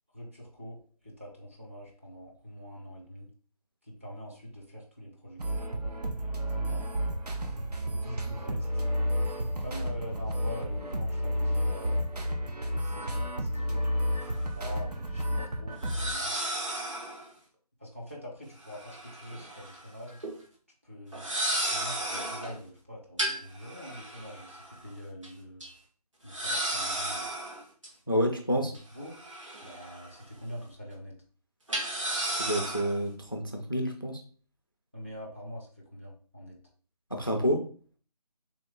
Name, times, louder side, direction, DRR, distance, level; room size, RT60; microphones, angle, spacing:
voice 1, 0.1-0.8 1.0-3.3 4.0-5.7 6.5-7.0 7.9-8.7 9.6-12.3 12.8-13.9 14.5-16.4 17.8-20.2 20.8-21.3 21.7-25.6 26.2-27.3 28.6-29.1 29.6-31.1 34.9-36.6, equal, 20° right, -3 dB, 0.6 m, -44 dB
sound 1, 5.4-16.1, equal, 75° right, 0.8 m, -31 dB
sound 2, 14.2-14.3 15.8-17.3 18.6-19.8 20.1-20.3 21.1-22.6 23.2-24.8 25.2-25.3 25.6-25.7 26.3-27.9 28.7-30.2 30.5-30.6 31.7-33.0, right 1 dB, 50° right, 1.4 m, -34 dB
voice 2, 28.1-28.7 32.3-34.2 37.1-37.7, equal, 35° left, 4 dB, 0.3 m, -29 dB
3.6 x 3.0 x 3.6 m, 0.42 s
figure-of-eight pair, 180°, 21 cm